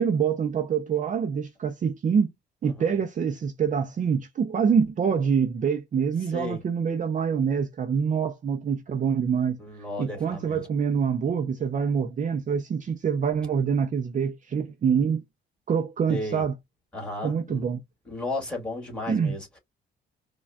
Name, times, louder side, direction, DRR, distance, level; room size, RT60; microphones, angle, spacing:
voice 1, 0.0-2.3 2.6-9.6 10.0-15.2 15.7-16.5 17.2-17.8 19.1-19.3, right 6 dB, 40° right, 0.5 m, -25 dB
voice 2, 2.6-3.0 6.3-6.6 9.6-10.7 16.1-16.4 16.9-17.7 18.1-19.6, left 2 dB, 5° left, 2.0 m, -34 dB
4.5 x 2.3 x 2.2 m
cardioid pair, 90°, 20 cm